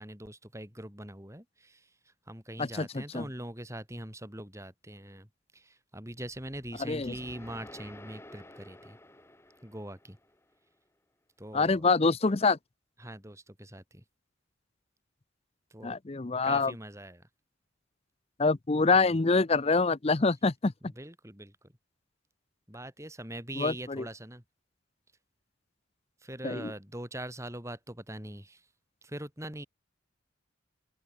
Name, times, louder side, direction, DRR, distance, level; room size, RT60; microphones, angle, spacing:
voice 1, 0.0-5.3 5.5-9.0 9.6-10.2 11.4-11.8 13.0-14.0 15.7-16.0 16.4-17.3 18.8-19.2 20.8-21.7 22.7-24.4 26.2-28.6 29.0-29.7, right 1 dB, 15° right, 5.0 m, -42 dB
voice 2, 2.6-3.3 6.8-7.1 11.5-12.6 15.8-16.7 18.4-20.7 23.6-24.0 26.4-26.7, left 3 dB, 30° left, 0.6 m, -26 dB
sound 1, 6.3-10.5, left 1 dB, 10° left, 1.4 m, -52 dB
open air
head